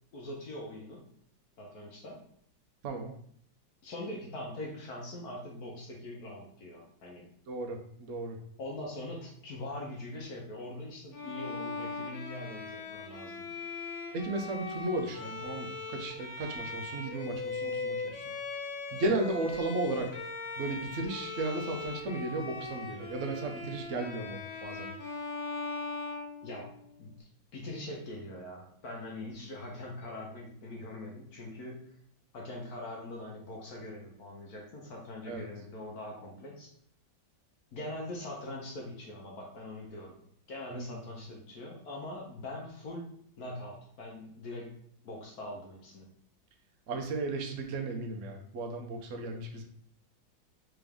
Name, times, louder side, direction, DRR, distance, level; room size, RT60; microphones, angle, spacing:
voice 1, 0.1-1.0 1.6-2.2 3.8-7.3 8.6-13.5 26.4-26.7 27.0-31.9 32.3-36.7 37.7-40.2 40.5-43.1 43.4-44.7 45.0-46.1, left 1 dB, 60° left, -1 dB, 1.1 m, -42 dB
voice 2, 7.5-8.4 14.1-18.2 18.9-20.1 20.6-24.9 35.3-35.4 40.7-41.0 46.9-49.6, right 2 dB, 65° right, 3 dB, 0.7 m, -35 dB
Bowed string instrument, 11.1-27.0, left 3 dB, 90° left, 1.6 m, -39 dB
3.8 x 3.4 x 3.4 m, 0.65 s
omnidirectional pair, 2.1 m